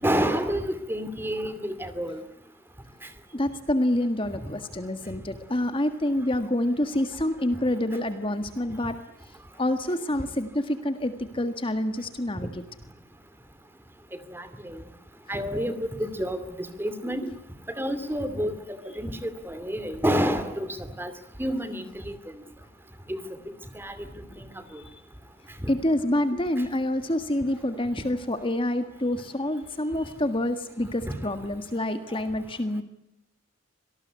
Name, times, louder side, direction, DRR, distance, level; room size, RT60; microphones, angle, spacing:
voice 1, 0.0-2.2 4.4-4.5 14.3-14.8 15.3-17.2 17.7-18.6 19.0-21.1 21.4-22.1 23.1-23.2 23.7-24.1 24.7-24.8 25.6-25.7 31.0-31.2, equal, 10° right, 12 dB, 2.5 m, -29 dB
voice 2, 3.0-9.0 9.6-12.6 17.2-17.3 24.7-24.9 25.7-32.8, left 1 dB, 25° left, 9 dB, 1.7 m, -27 dB
26.0 x 19.5 x 9.5 m, 0.81 s
head